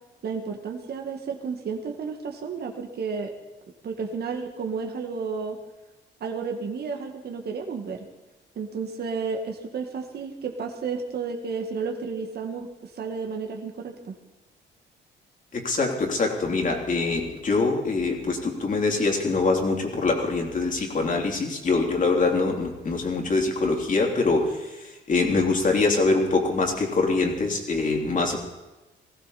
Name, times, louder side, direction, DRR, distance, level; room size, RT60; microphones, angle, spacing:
voice 1, 0.2-3.3 3.8-5.6 6.2-8.1 8.6-14.2, right 5 dB, 55° right, 2 dB, 1.8 m, -32 dB
voice 2, 15.5-28.4, left 3 dB, 40° left, 1 dB, 3.4 m, -24 dB
19.5 x 15.5 x 4.2 m, 1.1 s
cardioid pair, 90°, 20 cm